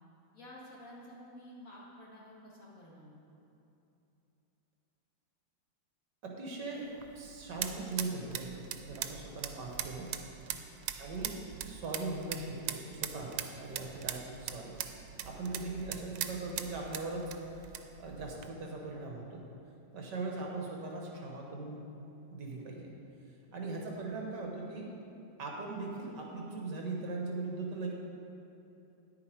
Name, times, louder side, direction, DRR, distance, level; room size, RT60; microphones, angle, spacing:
voice 1, 0.3-3.4 10.5-10.7 15.3-15.5, equal, 45° left, -5 dB, 2.0 m, -52 dB
voice 2, 6.2-10.1 11.0-14.8 15.2-17.3 18.0-19.4 19.9-21.8 22.3-22.9 23.5-24.9 25.4-27.9, right 3 dB, 65° right, 0 dB, 1.8 m, -40 dB
sound 1, 6.8-18.5, right 10 dB, 90° right, 1.3 m, -42 dB
10.0 x 8.4 x 4.5 m, 2.9 s
omnidirectional pair, 2.1 m